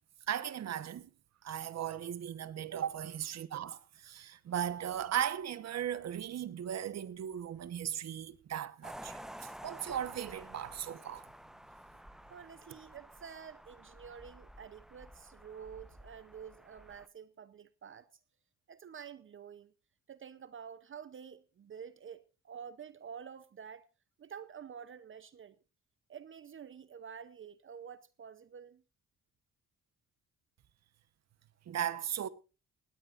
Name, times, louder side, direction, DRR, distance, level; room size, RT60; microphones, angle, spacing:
voice 1, 0.3-1.1 1.4-11.2 31.7-32.3, right 10 dB, 60° right, 1.2 m, -37 dB
sound 1, 8.8-17.1, equal, ahead, 0.9 m, -51 dB
voice 2, 12.3-18.1 18.7-19.7 20.1-23.9 24.2-25.6 26.1-28.8, right 7 dB, 40° right, 0.8 m, -49 dB
18.0 x 17.0 x 2.5 m
cardioid pair, 90°, 30 cm